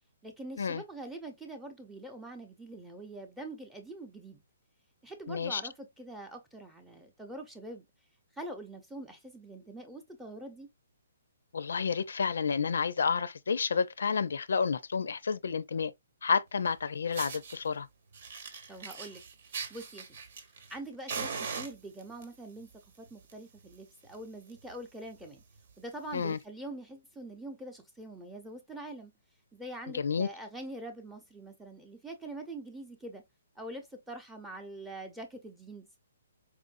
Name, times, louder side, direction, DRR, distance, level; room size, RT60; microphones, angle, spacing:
voice 1, 0.2-4.4 5.0-7.9 8.4-10.7 18.7-20.1 20.7-22.7 23.0-25.4 25.8-29.1 29.5-33.2 33.6-35.9, right 1 dB, 5° right, 0.7 m, -44 dB
voice 2, 5.3-5.6 11.5-15.9 16.2-17.9 26.1-26.4 29.9-30.3, left 5 dB, 80° left, 0.4 m, -30 dB
Fire, 16.6-16.7 17.1-17.6 18.1-20.8 21.1-22.2 23.1-23.3 23.6-23.7 24.1-24.2 24.5-24.7 25.3-25.4 26.3-26.4, right 5 dB, 55° right, 1.0 m, -40 dB
4.6 x 2.5 x 2.5 m
hypercardioid pair, 160°, 0 cm